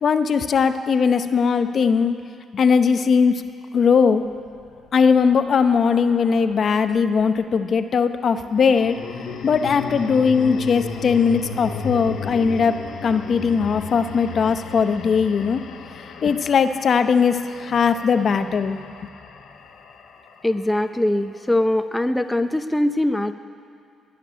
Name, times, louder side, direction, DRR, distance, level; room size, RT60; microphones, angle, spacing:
voice 1, 0.0-2.2 2.5-3.3 3.7-4.2 4.9-9.0 9.4-15.6 16.2-18.8, left 6 dB, 50° left, 9 dB, 0.7 m, -19 dB
sound 1, 4.3-6.8 8.4-20.7, left 5 dB, 75° left, 1.2 m, -35 dB
voice 2, 20.4-23.3, left 1 dB, 10° left, 8 dB, 0.6 m, -22 dB
20.0 x 6.7 x 9.8 m, 2.4 s
cardioid pair, 90°, 0 cm